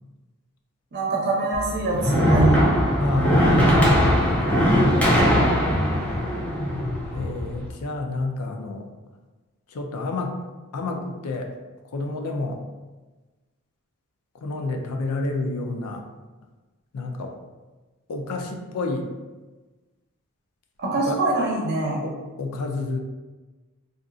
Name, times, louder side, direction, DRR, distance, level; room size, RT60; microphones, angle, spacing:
voice 1, 0.9-2.7 20.8-22.0, right 2 dB, 50° right, -3 dB, 0.7 m, -23 dB
sound 1, 1.5-7.7, equal, 5° left, 0.5 m, -20 dB
voice 2, 3.0-4.8 7.1-8.9 9.7-10.4 10.7-11.5 11.9-12.6 14.3-16.0 16.9-17.3 18.1-19.1 21.0-21.2 22.0-23.0, left 2 dB, 90° left, 3 dB, 0.5 m, -29 dB
3.7 x 2.6 x 2.4 m, 1.2 s
head